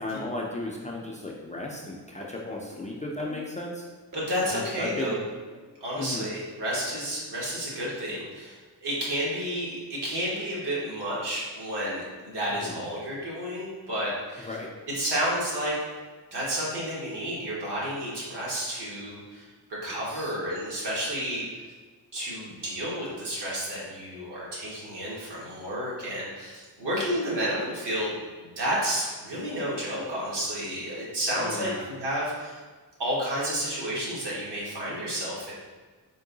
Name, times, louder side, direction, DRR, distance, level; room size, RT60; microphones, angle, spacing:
voice 1, 0.0-3.8 4.4-5.2 6.0-6.3 12.6-12.8 14.5-14.7 20.1-20.3 31.4-31.9, left 2 dB, 20° left, -3 dB, 0.3 m, -35 dB
sound 1, 2.2-2.3 2.7-2.8 3.2-3.8 4.1-4.2 4.6-4.7 5.0-5.1 5.5-5.6 6.7-6.9 8.1-8.2, left 2 dB, 50° right, 0.8 m, -45 dB
voice 2, 4.1-5.2 5.8-14.5 14.9-15.7 16.3-21.4 22.1-32.6 33.0-35.5, equal, 75° right, -6 dB, 1.4 m, -31 dB
3.8 x 2.6 x 3.7 m, 1.4 s
wide cardioid pair, 150°, 41 cm